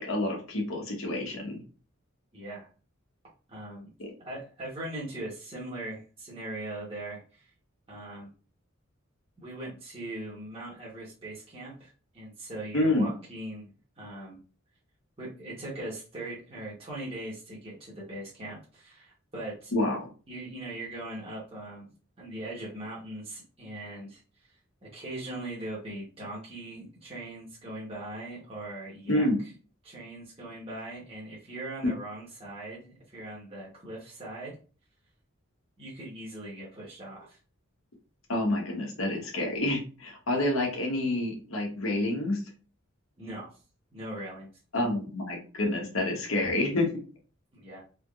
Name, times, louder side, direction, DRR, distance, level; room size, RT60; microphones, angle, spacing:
voice 1, 0.0-1.6 4.0-4.1 12.7-13.1 19.7-20.1 29.1-29.4 38.3-42.4 44.7-46.9, left 1 dB, 90° left, 1 dB, 1.2 m, -28 dB
voice 2, 2.3-2.7 3.5-3.9 4.2-7.5 7.9-8.3 9.4-13.7 14.0-14.4 15.2-19.7 20.3-21.9 22.2-24.2 24.8-29.3 29.8-34.5 35.8-37.4 43.2-43.5 43.9-44.5 47.5-47.8, right 1 dB, 30° right, -6 dB, 1.0 m, -40 dB
3.4 x 3.0 x 2.4 m, 0.36 s
head